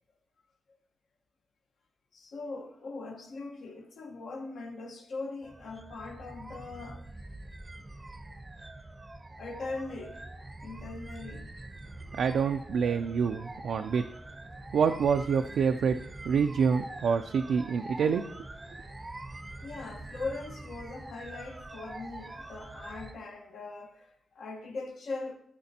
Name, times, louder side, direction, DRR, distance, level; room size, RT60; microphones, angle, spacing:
voice 1, 2.1-7.1 9.4-10.2 10.6-11.5 19.6-25.4, left 3 dB, 75° left, 1.1 m, -40 dB
sound 1, 5.4-23.1, right 2 dB, 20° right, 0.5 m, -44 dB
voice 2, 12.2-14.0 14.7-16.0 16.2-18.2, right 6 dB, 85° right, 0.3 m, -27 dB
12.5 x 5.2 x 2.8 m
cardioid pair, 105°, 0 cm